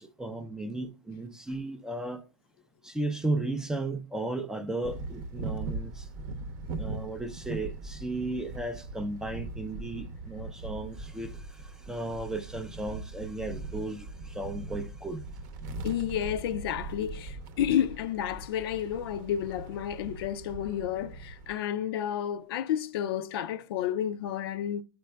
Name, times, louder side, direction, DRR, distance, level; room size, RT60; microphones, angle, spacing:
voice 1, 0.0-2.2 2.8-6.1 6.7-15.2, right 2 dB, 5° right, 0.4 m, -35 dB
sound 1, 4.8-21.6, right 3 dB, 50° right, 0.7 m, -40 dB
voice 2, 15.8-24.8, left 10 dB, 75° left, 0.4 m, -31 dB
12.5 x 5.1 x 2.2 m
supercardioid pair, 160°, 13 cm